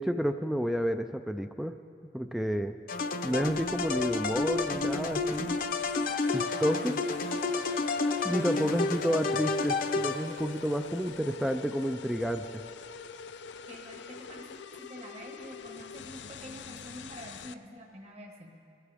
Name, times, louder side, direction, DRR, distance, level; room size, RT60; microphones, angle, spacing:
voice 1, 0.0-1.8 2.1-2.8 3.2-5.6 6.3-7.0 8.2-12.6, equal, ahead, 6 dB, 0.3 m, -30 dB
sound 1, 2.9-10.6, left 3 dB, 50° left, 0.7 m, -30 dB
sound 2, 3.3-17.5, left 6 dB, 85° left, 0.5 m, -45 dB
voice 2, 13.7-18.5, equal, 35° right, 1 dB, 1.3 m, -47 dB
22.0 x 14.5 x 3.5 m, 2.5 s
head